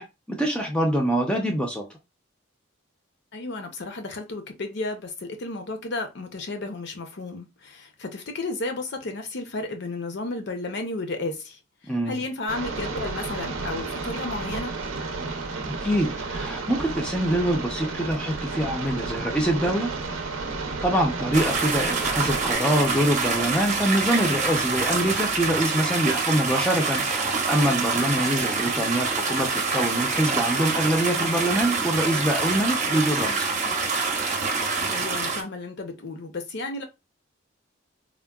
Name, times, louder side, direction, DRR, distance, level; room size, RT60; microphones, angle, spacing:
voice 1, 0.0-1.8 11.9-12.2 15.8-19.9 20.8-33.5, right 1 dB, 5° left, 0.5 m, -25 dB
voice 2, 3.3-11.6 12.1-14.7 34.9-36.8, left 2 dB, 60° left, 0.6 m, -33 dB
sound 1, 12.5-22.6, right 3 dB, 85° right, 0.6 m, -32 dB
sound 2, 21.3-35.4, right 4 dB, 40° right, 0.7 m, -26 dB
3.6 x 2.2 x 2.2 m
head